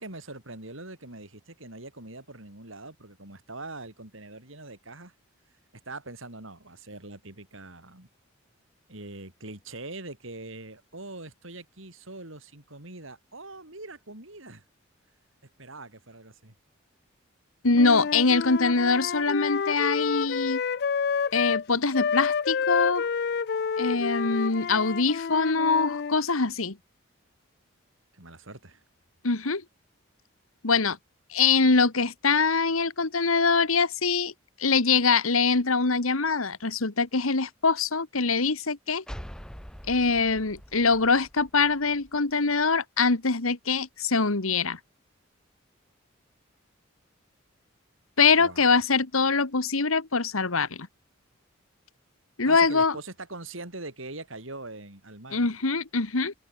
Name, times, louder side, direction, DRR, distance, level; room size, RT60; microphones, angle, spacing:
voice 1, 0.0-5.1 5.8-8.1 8.9-14.6 15.6-16.5 28.1-28.8 48.4-48.7 52.4-55.5, right 2 dB, 75° right, 4.9 m, -42 dB
voice 2, 17.6-20.6 21.3-23.1 23.8-26.8 29.2-29.6 30.6-31.0 31.3-34.3 34.6-39.0 39.9-44.8 48.2-50.9 52.4-53.0 55.3-56.3, left 4 dB, 90° left, 1.7 m, -23 dB
Wind instrument woodwind instrument, 17.7-21.6 21.9-26.2, left 6 dB, 50° left, 0.4 m, -29 dB
sound 1, 39.1-42.6, equal, 5° left, 2.6 m, -44 dB
open air
head